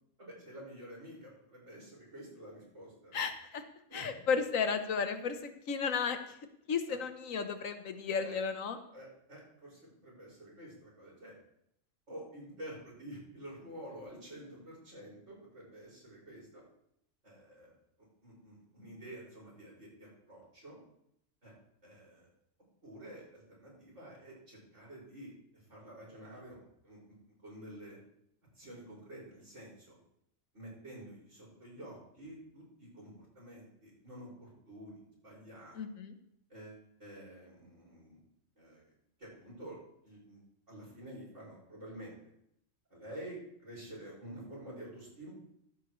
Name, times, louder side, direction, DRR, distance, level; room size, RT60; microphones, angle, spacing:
voice 1, 0.2-3.2 3.9-4.2 6.9-7.0 8.2-8.4 8.9-11.3 12.1-16.6 17.2-17.7 18.2-20.8 21.4-21.5 21.8-22.3 22.8-27.0 27.4-28.0 28.5-30.0 30.5-35.8 36.5-38.2 38.6-38.8 39.2-39.8 40.0-40.4 40.7-42.2 42.9-45.3, right 1 dB, 65° right, -4 dB, 6.5 m, -49 dB
voice 2, 3.1-3.6 3.9-5.4 5.7-6.2 6.7-8.8 35.8-36.1, left 6 dB, 75° left, 8 dB, 1.5 m, -33 dB
15.0 x 12.0 x 3.2 m, 0.75 s
omnidirectional pair, 1.4 m